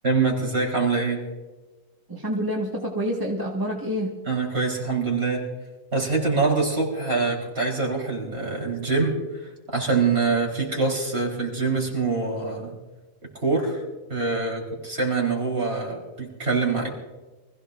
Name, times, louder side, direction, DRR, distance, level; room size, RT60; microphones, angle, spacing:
voice 1, 0.0-1.3 4.3-5.5 5.9-12.8 13.4-13.8 14.1-16.9, right 4 dB, 40° right, -1 dB, 4.4 m, -24 dB
voice 2, 2.1-4.1, equal, 15° right, -2 dB, 1.6 m, -27 dB
25.5 x 16.0 x 2.6 m, 1.2 s
omnidirectional pair, 1.6 m